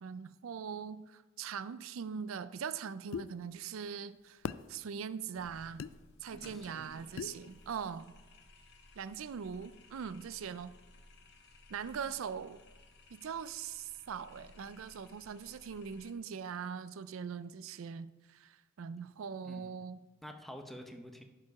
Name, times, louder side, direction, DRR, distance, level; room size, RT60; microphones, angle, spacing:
voice 1, 0.0-4.4 4.7-5.8 6.2-8.1 9.0-10.7 11.7-12.6 13.1-20.0, right 7 dB, 80° right, 15 dB, 0.4 m, -41 dB
sound 1, 3.1-3.3 4.4-4.7 5.8-5.9 7.2-7.4, left 7 dB, 80° left, 0.3 m, -38 dB
sound 2, 5.3-16.1, left 2 dB, 55° left, 1.0 m, -59 dB
voice 2, 6.3-7.1 11.9-12.0 19.4-19.8 20.2-21.2, equal, ahead, 4 dB, 0.7 m, -49 dB
11.5 x 4.9 x 4.7 m, 1.2 s
head